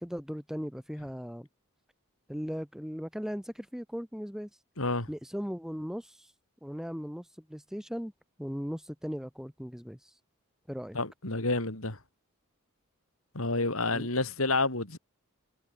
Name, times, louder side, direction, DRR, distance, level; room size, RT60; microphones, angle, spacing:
voice 1, 0.0-1.5 2.3-4.5 5.1-6.3 6.6-8.1 8.4-10.1 10.7-11.0 13.9-14.1, equal, ahead, 2.0 m, -38 dB
voice 2, 4.8-5.1 10.9-12.0 13.3-15.0, left 3 dB, 75° left, 4.4 m, -29 dB
head